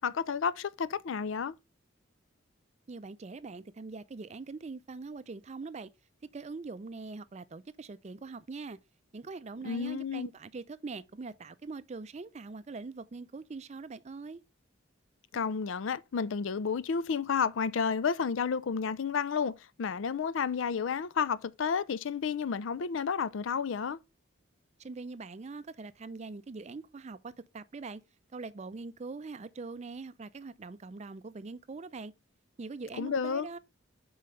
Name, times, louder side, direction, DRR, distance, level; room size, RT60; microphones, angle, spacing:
voice 1, 0.0-1.5 9.6-10.3 15.3-24.0 33.0-33.5, left 6 dB, 75° left, 0.4 m, -31 dB
voice 2, 2.9-5.9 6.2-8.8 9.1-14.4 24.8-28.0 28.3-32.1 32.6-33.6, right 3 dB, 35° right, 0.4 m, -43 dB
7.6 x 4.7 x 3.2 m
head